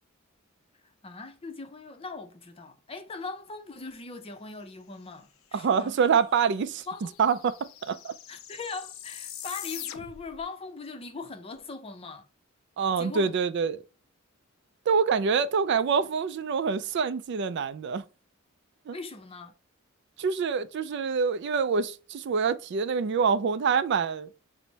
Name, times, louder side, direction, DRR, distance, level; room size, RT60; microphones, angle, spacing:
voice 1, 0.8-6.0 6.9-7.2 8.3-12.3 13.0-13.3 18.9-19.5, left 4 dB, 30° left, 0.6 m, -40 dB
voice 2, 5.5-6.8 7.2-7.5 7.9-8.1 12.8-13.8 14.9-18.0 18.9-19.0 20.2-24.3, right 6 dB, 55° right, 0.3 m, -26 dB
sound 1, 5.9-6.0 6.2-10.4, left 11 dB, 80° left, 0.5 m, -43 dB
6.2 x 2.1 x 3.9 m
head